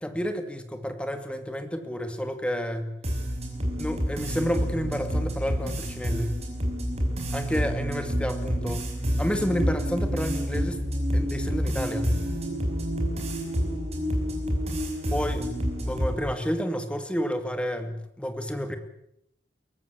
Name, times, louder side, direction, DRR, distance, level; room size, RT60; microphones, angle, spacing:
voice 1, 0.0-2.9 3.8-6.3 7.3-8.9 9.2-10.8 11.1-12.2 15.1-15.5 15.8-18.8, equal, 5° left, 7 dB, 2.3 m, -30 dB
sound 1, 3.0-16.2, equal, 35° right, 5.9 m, -28 dB
23.0 x 18.0 x 8.3 m, 0.76 s
head